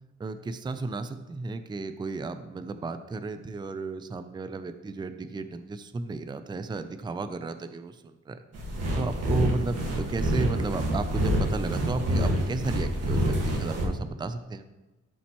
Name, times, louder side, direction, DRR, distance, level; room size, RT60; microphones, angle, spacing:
voice 1, 0.2-8.4 9.0-14.6, right 3 dB, 15° right, 10 dB, 0.4 m, -33 dB
sound 1, 8.5-13.8, equal, 55° right, 1.8 m, -27 dB
12.5 x 4.3 x 3.0 m, 1.1 s
cardioid pair, 90°, 30 cm